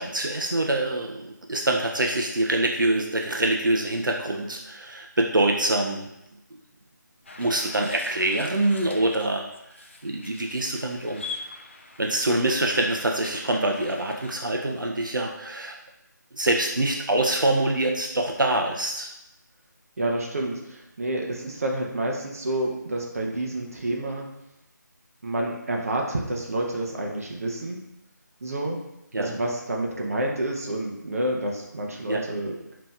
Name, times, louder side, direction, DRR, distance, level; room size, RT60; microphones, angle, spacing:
voice 1, 0.0-6.1 6.5-6.6 7.4-9.5 10.0-11.2 12.0-15.8 16.3-19.1 29.1-29.3 32.1-32.2, right 1 dB, 85° right, 1 dB, 0.5 m, -25 dB
sound 1, 7.3-14.3, left 3 dB, 40° left, 0.3 m, -42 dB
voice 2, 20.0-24.3 25.2-27.8 28.4-28.8 29.1-32.7, right 1 dB, 50° right, 0 dB, 0.7 m, -29 dB
4.9 x 2.9 x 2.3 m, 0.87 s
figure-of-eight pair, 160°, 10 cm